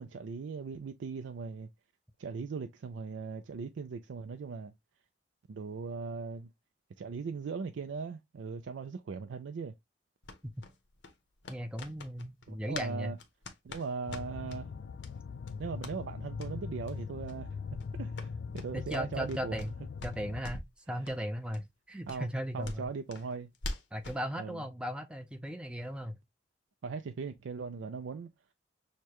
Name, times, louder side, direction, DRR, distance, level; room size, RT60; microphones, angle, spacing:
voice 1, 0.0-1.7 2.2-4.7 5.5-6.5 7.0-9.7 12.5-13.2 13.6-14.7 15.6-17.6 17.9-18.3 18.5-19.6 22.1-22.3 22.5-23.5 24.4-24.6 26.8-28.3, right 5 dB, 85° right, 0.4 m, -39 dB
Damp Sock Body Hits, 10.2-12.9 13.2-14.6 15.0-15.1 15.4-16.0 16.3-16.5 16.8-16.9 17.2-17.4 17.7-19.7 20.0-20.7 21.0-21.2 21.5-21.6 22.0-24.2, left 2 dB, 85° left, 0.8 m, -44 dB
voice 2, 11.5-13.2 18.7-19.7 20.0-22.9 23.9-26.2, equal, 5° right, 0.4 m, -37 dB
sound 1, 14.1-20.4, left 5 dB, 65° left, 0.3 m, -41 dB
6.5 x 2.2 x 2.9 m
head